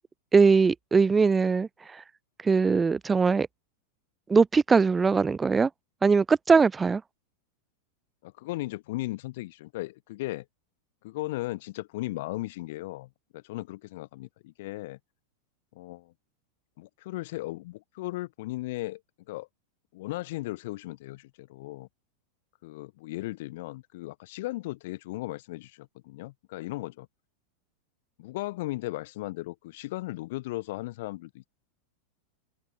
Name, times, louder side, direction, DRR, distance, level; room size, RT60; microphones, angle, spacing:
voice 1, 0.3-2.0 2.4-3.5 4.3-5.7 6.0-7.0, right 5 dB, 15° right, 0.6 m, -21 dB
voice 2, 8.2-10.5 11.0-15.0 15.7-16.1 16.8-19.0 19.3-19.5 19.9-21.9 22.6-27.1 28.2-31.5, left 19 dB, 60° left, 5.2 m, -36 dB
figure-of-eight pair, 90°, 0 cm